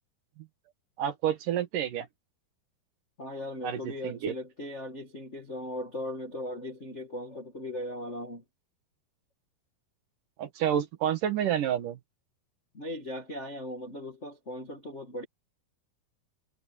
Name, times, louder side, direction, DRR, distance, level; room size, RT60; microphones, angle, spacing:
voice 1, 1.0-2.1 3.6-4.3 10.4-12.0, right 10 dB, 60° right, 2.8 m, -29 dB
voice 2, 3.2-8.4 12.7-15.2, left 1 dB, 40° left, 1.0 m, -38 dB
omnidirectional pair, 4.6 m